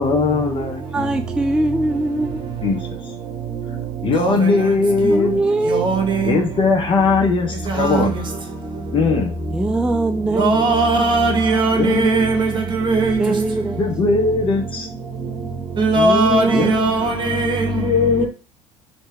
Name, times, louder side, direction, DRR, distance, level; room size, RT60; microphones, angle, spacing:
voice 1, 0.0-1.3 2.6-3.1 4.0-5.4 6.2-8.2 8.9-9.4 11.8-12.3 13.7-14.9 16.5-17.4 17.7-18.3, left 4 dB, 40° left, 0.8 m, -20 dB
voice 2, 0.9-2.4 5.1-5.8 9.5-10.9 13.2-13.8 15.9-16.8 18.2-18.3, right 2 dB, 5° right, 0.3 m, -21 dB
voice 3, 5.7-6.0 7.8-8.0 10.4-12.5 12.9-13.2 15.8-17.1 17.4-17.6, right 3 dB, 35° right, 1.1 m, -17 dB
3.2 x 2.8 x 3.3 m
hypercardioid pair, 75°, 14 cm